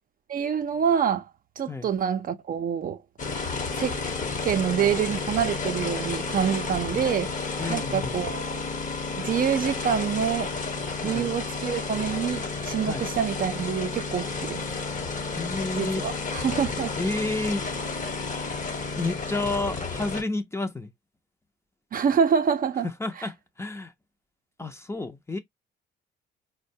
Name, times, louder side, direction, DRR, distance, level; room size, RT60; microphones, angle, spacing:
voice 1, 0.3-1.3 1.6-3.0 3.8-4.0 4.4-7.3 7.7-8.6 9.2-10.5 11.0-14.7 15.7-17.0 21.9-22.9 23.2-23.3, right 7 dB, 45° right, 0.5 m, -26 dB
sound 1, 3.2-20.2, left 4 dB, 40° left, 0.9 m, -31 dB
voice 2, 7.6-8.2 11.0-11.3 12.9-13.1 15.3-16.0 17.0-17.6 18.9-20.9 23.0-23.9 24.6-25.4, left 2 dB, 15° left, 0.6 m, -30 dB
4.3 x 2.2 x 2.6 m
cardioid pair, 90°, 20 cm